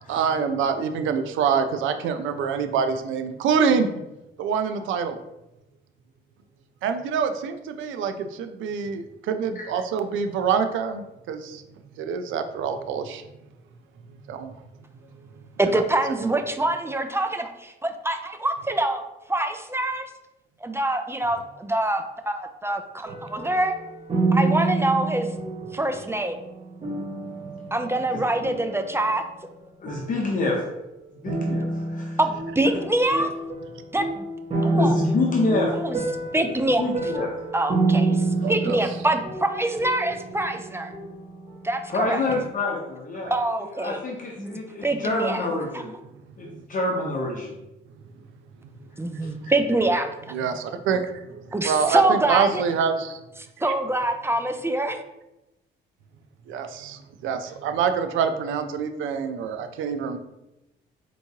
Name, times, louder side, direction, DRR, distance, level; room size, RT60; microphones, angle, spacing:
voice 1, 0.1-3.9 4.4-5.2 6.8-11.6 12.0-13.2 14.1-14.5 15.6-15.8 16.2-16.3 38.2-38.8 46.4-46.6 49.0-49.5 50.3-53.2 53.6-53.7 56.5-60.2, right 6 dB, 80° right, 8 dB, 0.5 m, -26 dB
voice 2, 15.6-19.0 19.3-20.1 20.6-23.7 24.3-25.3 25.7-26.4 27.7-29.2 32.2-33.3 33.9-34.3 34.6-34.9 35.8-36.0 36.3-36.8 37.5-40.9 41.6-42.2 43.3-44.0 44.4-44.5 44.8-45.4 45.7-45.8 49.0-50.3 51.5-52.6 53.6-55.0, right 2 dB, 10° right, 7 dB, 0.4 m, -25 dB
sound 1, 23.1-29.6 29.9-30.7 31.3-41.9 42.3-42.4, right 2 dB, 30° right, 1.1 m, -28 dB
voice 3, 29.8-30.6 31.1-32.2 34.7-35.7 36.8-37.3 41.9-46.0 46.4-47.5 49.2-49.5, left 2 dB, 40° left, -1 dB, 0.8 m, -27 dB
4.4 x 3.0 x 2.8 m, 0.94 s
cardioid pair, 90°, 20 cm